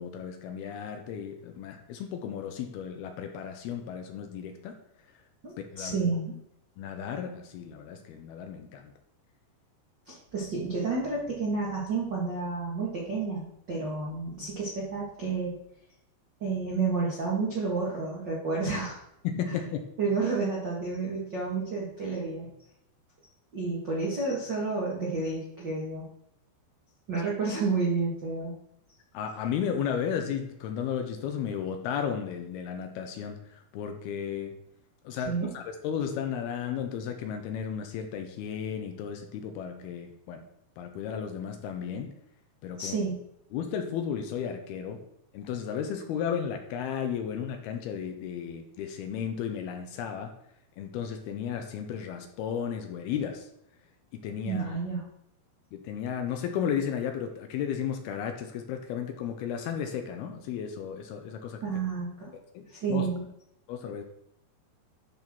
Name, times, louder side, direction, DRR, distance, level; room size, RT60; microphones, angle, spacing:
voice 1, 0.0-4.8 5.7-6.1 6.8-8.9 19.2-19.9 29.1-34.6 35.0-40.5 40.8-42.1 42.6-43.0 43.5-45.0 45.3-50.3 50.8-53.5 54.1-54.8 55.7-61.6 62.5-63.1 63.7-64.0, left 8 dB, 80° left, 5 dB, 2.5 m, -34 dB
voice 2, 5.4-6.3 10.1-15.6 16.4-19.0 20.0-22.5 23.5-26.0 27.1-28.5 35.3-35.5 42.8-43.1 54.5-55.0 61.6-62.3 62.7-63.2, right 4 dB, 90° right, -5 dB, 0.9 m, -30 dB
11.5 x 6.1 x 3.7 m, 0.77 s
omnidirectional pair, 5.0 m